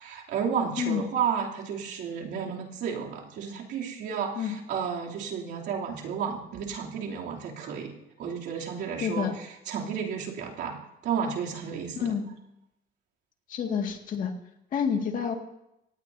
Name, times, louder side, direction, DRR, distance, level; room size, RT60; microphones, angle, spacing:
voice 1, 0.0-7.9 8.2-12.1, right 7 dB, 75° right, -2 dB, 3.1 m, -32 dB
voice 2, 9.0-9.3 12.0-12.3 13.5-14.3 14.7-15.3, left 7 dB, 50° left, 3 dB, 2.2 m, -28 dB
25.5 x 18.0 x 2.8 m, 0.85 s
cardioid pair, 155°, 18 cm